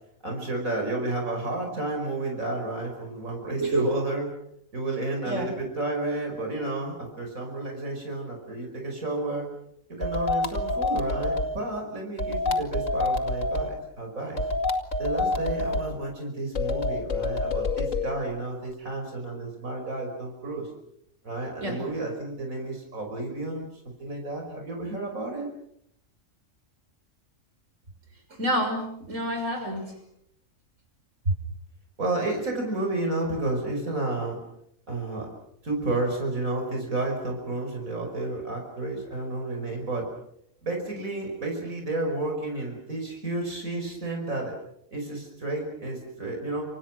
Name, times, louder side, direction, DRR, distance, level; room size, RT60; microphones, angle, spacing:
voice 1, 0.2-4.3 4.7-9.5 9.9-14.4 15.0-20.7 21.2-25.5 32.0-34.4 34.9-35.3 35.6-40.1 40.6-44.5 44.9-46.6, right 2 dB, 90° right, 1 dB, 5.8 m, -31 dB
voice 2, 3.6-3.9 5.2-5.5 21.6-21.8 28.3-29.9, right 1 dB, 70° right, 4 dB, 6.6 m, -28 dB
sound 1, 10.0-11.6 12.2-13.7 14.4-15.9 16.5-18.1, left 2 dB, 70° left, 2.7 m, -27 dB
29.5 x 26.0 x 6.2 m, 0.75 s
omnidirectional pair, 1.4 m